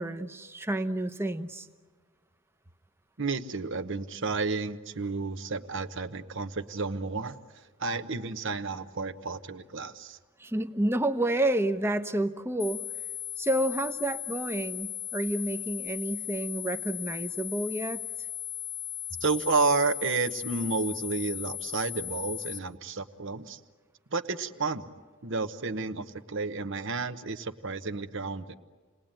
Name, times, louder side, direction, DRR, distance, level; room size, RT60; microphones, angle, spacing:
voice 1, 0.0-1.7 10.4-12.8 13.4-18.0, right 1 dB, 10° right, 9 dB, 0.9 m, -29 dB
voice 2, 3.2-7.4 7.8-10.2 19.2-23.6 24.1-24.9 25.2-28.5, right 4 dB, 60° right, 9 dB, 1.0 m, -31 dB
sound 1, 12.6-22.6, left 11 dB, 20° left, 0.9 m, -37 dB
29.5 x 20.0 x 9.0 m, 1.4 s
head